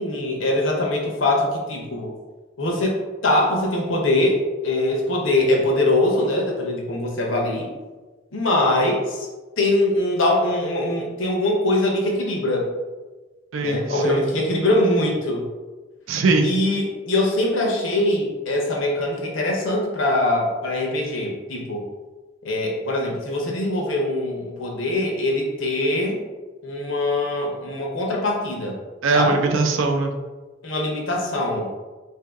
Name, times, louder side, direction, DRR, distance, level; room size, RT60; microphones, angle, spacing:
voice 1, 0.0-2.1 2.6-7.7 8.3-9.2 9.6-12.7 13.6-15.5 16.4-21.8 22.4-26.2 26.6-28.8 29.1-29.4 30.6-31.7, left 1 dB, 85° left, -1 dB, 0.8 m, -22 dB
voice 2, 13.5-14.2 16.1-16.5 29.0-30.1, right 3 dB, 90° right, 4 dB, 0.5 m, -21 dB
2.8 x 2.7 x 3.5 m, 1.3 s
head